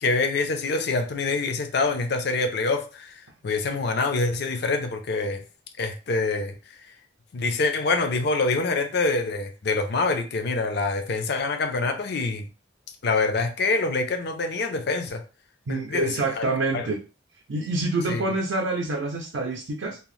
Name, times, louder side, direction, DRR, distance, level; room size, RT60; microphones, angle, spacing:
voice 1, 0.0-3.1 3.4-5.4 5.8-6.5 7.3-12.5 13.0-15.2 15.7-16.1 16.3-16.4 16.7-16.9 18.1-18.2, left 3 dB, 60° left, 0.5 m, -25 dB
voice 2, 15.7-17.0 17.5-20.0, right 2 dB, 70° right, 0.5 m, -27 dB
2.8 x 2.0 x 3.1 m
head